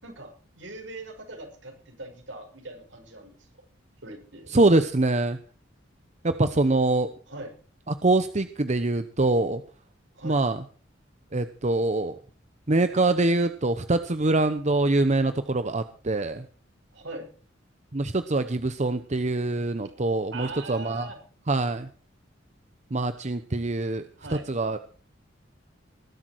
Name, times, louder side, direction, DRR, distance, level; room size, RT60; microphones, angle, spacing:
voice 1, 0.0-3.3 4.0-4.5 7.3-7.5 10.1-10.4 16.9-17.3 20.3-21.2 24.2-24.4, right 2 dB, 75° right, 3 dB, 6.4 m, -41 dB
voice 2, 4.5-5.4 6.2-7.1 7.9-9.6 10.2-10.6 11.3-12.2 12.7-16.5 17.9-21.1 21.5-21.9 22.9-24.8, right 2 dB, 40° right, 10 dB, 0.9 m, -24 dB
20.0 x 12.0 x 4.6 m, 0.41 s
head